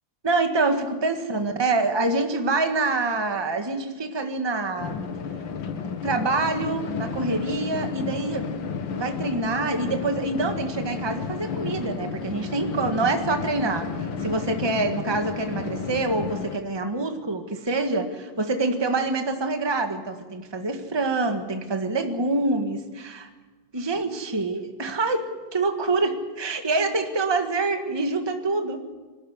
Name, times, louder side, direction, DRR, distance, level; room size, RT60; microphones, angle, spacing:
voice 1, 0.2-5.0 6.0-8.5 8.9-23.3 23.7-28.8, right 3 dB, 15° right, 5 dB, 1.5 m, -26 dB
sound 1, 4.8-16.6, left 5 dB, 75° left, 2.1 m, -32 dB
26.0 x 13.0 x 9.6 m, 1.3 s
omnidirectional pair, 2.1 m